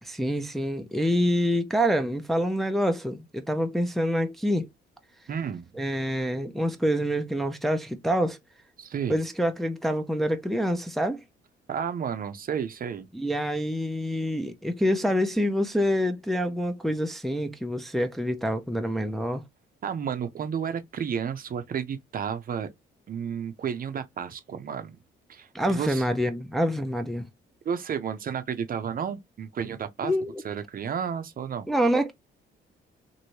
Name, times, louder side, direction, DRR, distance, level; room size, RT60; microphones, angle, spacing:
voice 1, 0.0-4.7 5.8-8.4 9.1-11.2 13.1-19.4 25.5-27.3 30.0-30.4 31.7-32.1, equal, ahead, 0.5 m, -26 dB
voice 2, 5.3-5.8 8.8-9.2 11.7-13.1 19.8-22.7 23.1-25.0 25.3-26.1 27.6-30.1 30.4-31.7, right 7 dB, 45° right, 0.6 m, -32 dB
3.0 x 2.7 x 2.8 m
cardioid pair, 90°, 20 cm